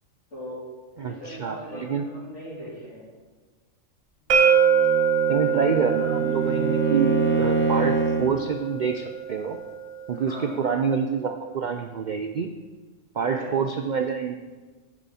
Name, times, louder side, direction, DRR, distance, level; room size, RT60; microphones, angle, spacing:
voice 1, 0.3-0.7 1.0-3.1 10.1-10.6 13.2-13.7, equal, 60° left, -7 dB, 3.8 m, -39 dB
voice 2, 1.0-2.0 5.3-9.6 10.1-12.5 13.1-14.4, right 6 dB, 65° right, 6 dB, 0.4 m, -27 dB
sound 1, 4.3-10.1, right 7 dB, 85° right, 1.2 m, -24 dB
Bowed string instrument, 4.5-8.4, right 4 dB, 10° left, 1.1 m, -25 dB
10.0 x 7.1 x 4.2 m, 1.4 s
omnidirectional pair, 1.4 m